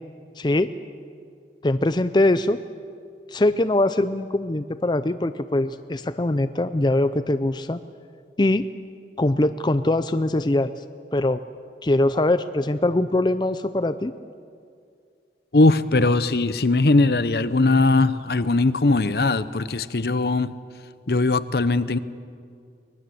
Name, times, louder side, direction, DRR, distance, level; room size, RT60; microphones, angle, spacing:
voice 1, 0.4-0.7 1.6-2.6 3.3-7.8 8.4-8.7 9.2-10.7 11.1-11.4 11.8-14.1, left 1 dB, 25° left, 0.5 m, -22 dB
voice 2, 15.5-20.6 21.1-22.0, left 2 dB, 60° left, 0.8 m, -20 dB
24.5 x 20.0 x 7.8 m
head